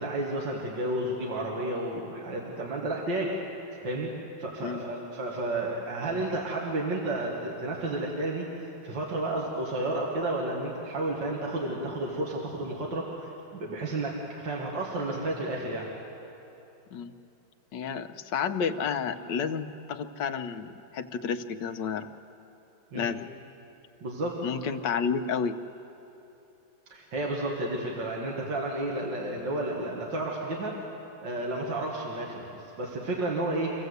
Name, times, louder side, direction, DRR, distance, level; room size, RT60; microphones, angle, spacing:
voice 1, 0.0-3.3 3.8-4.1 4.4-15.9 22.9-23.1 24.0-24.4 26.9-30.7 31.2-33.7, right 2 dB, 70° right, -3 dB, 2.6 m, -32 dB
voice 2, 17.7-22.1 22.9-23.3 24.4-25.6, left 6 dB, 70° left, 7 dB, 1.4 m, -31 dB
26.5 x 16.0 x 8.1 m, 2.9 s
omnidirectional pair, 2.1 m